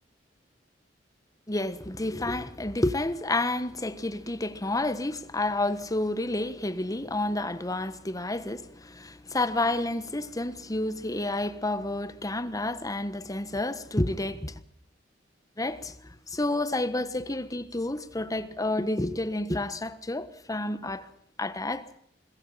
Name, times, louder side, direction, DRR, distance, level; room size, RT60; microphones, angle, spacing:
voice 1, 1.5-14.6 15.6-21.1 21.4-21.8, left 2 dB, 20° left, 1.3 m, -30 dB
25.0 x 22.0 x 5.8 m
head